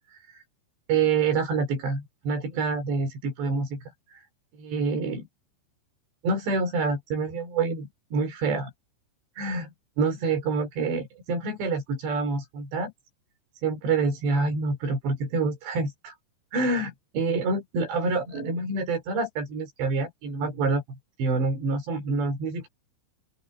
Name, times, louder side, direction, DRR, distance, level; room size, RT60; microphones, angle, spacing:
voice 1, 0.9-4.2 4.6-5.3 6.2-8.7 9.4-12.9 13.6-16.1 16.5-22.7, right 4 dB, 65° right, 7.6 m, -27 dB
open air
omnidirectional pair, 5.5 m